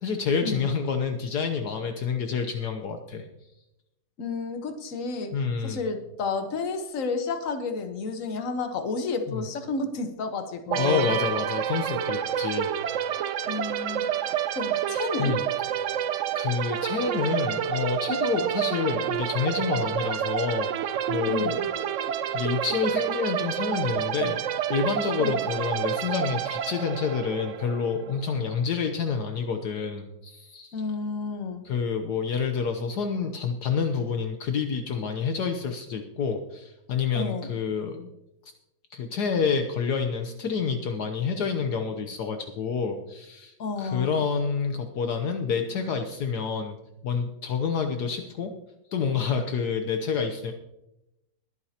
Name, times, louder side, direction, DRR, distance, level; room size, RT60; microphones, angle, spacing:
voice 1, 0.0-3.2 5.3-5.8 9.3-9.4 10.7-13.1 15.2-15.4 15.8-16.0 16.3-21.7 22.3-24.4 24.7-30.8 31.6-38.1 38.4-38.5 38.9-46.8 47.0-48.5 48.9-50.5, left 5 dB, 70° left, 6 dB, 1.4 m, -28 dB
voice 2, 4.2-5.3 5.6-11.1 13.5-14.1 14.5-15.4 21.3-21.6 25.2-25.4 30.7-31.6 37.1-37.5 43.6-44.2, left 4 dB, 50° left, 7 dB, 1.5 m, -31 dB
sound 1, 10.7-28.3, right 9 dB, 70° right, 0.7 m, -29 dB
21.5 x 9.2 x 2.9 m, 0.89 s
omnidirectional pair, 1.9 m